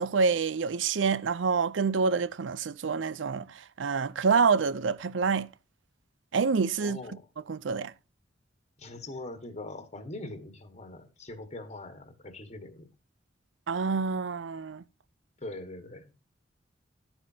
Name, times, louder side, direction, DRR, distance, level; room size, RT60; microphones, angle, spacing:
voice 1, 0.0-5.5 6.3-7.0 7.5-7.9 13.7-14.8, right 5 dB, 80° right, 0.5 m, -27 dB
voice 2, 6.8-7.2 8.8-12.9 15.4-16.2, left 2 dB, 40° left, 1.5 m, -42 dB
12.0 x 8.9 x 2.7 m
head